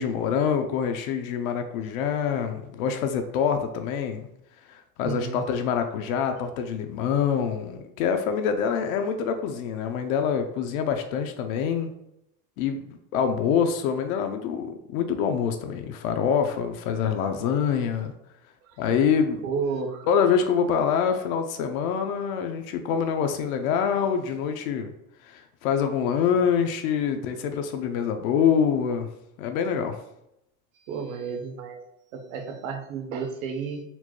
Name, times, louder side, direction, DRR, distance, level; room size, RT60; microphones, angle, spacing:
voice 1, 0.0-4.3 4.7-11.9 12.6-18.1 18.8-19.4 20.1-24.9 25.2-29.1 29.4-30.0, left 7 dB, 80° left, 6 dB, 0.6 m, -25 dB
voice 2, 5.0-5.4 19.4-20.1 30.9-31.8 32.1-33.8, right 5 dB, 80° right, 5 dB, 0.8 m, -32 dB
4.3 x 2.2 x 3.0 m, 0.81 s
supercardioid pair, 170°, 41 cm